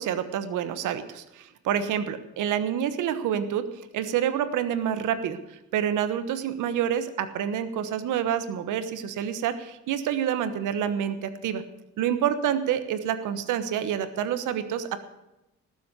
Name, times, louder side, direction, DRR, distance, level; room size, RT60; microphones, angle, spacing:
voice 1, 0.0-3.7 3.9-5.4 5.7-11.6 12.0-15.0, right 9 dB, 85° right, 11 dB, 1.3 m, -28 dB
18.5 x 7.8 x 8.3 m, 0.95 s
cardioid pair, 90°, 30 cm